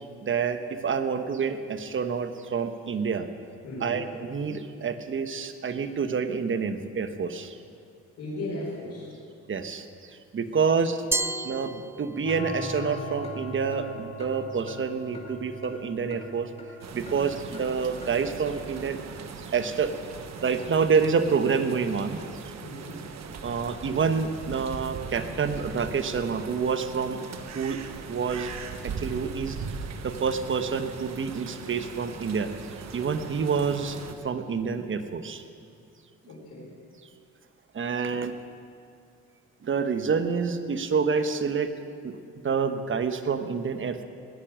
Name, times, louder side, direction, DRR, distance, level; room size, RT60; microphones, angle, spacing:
voice 1, 0.2-3.3 3.8-7.6 9.5-9.8 10.3-11.0 11.4-19.0 19.5-19.9 20.4-22.2 23.4-27.2 27.5-27.8 28.1-28.5 28.8-29.6 30.0-32.5 32.9-34.0 34.2-35.4 37.7-38.3 39.6-41.7 42.0-42.2 42.4-44.0, right 5 dB, 40° right, 9 dB, 1.2 m, -28 dB
voice 2, 3.6-4.1 8.2-9.2 10.6-10.8 22.6-23.1 36.3-36.7, left 1 dB, 80° left, -6 dB, 4.4 m, -37 dB
Glass, 11.1-12.6, right 2 dB, 10° right, 0.3 m, -31 dB
sound 1, 12.2-18.3, left 2 dB, 20° left, 2.4 m, -39 dB
sound 2, 16.8-34.1, right 5 dB, 60° right, 1.3 m, -40 dB
18.0 x 10.5 x 6.1 m, 2.5 s
cardioid pair, 90°, 30 cm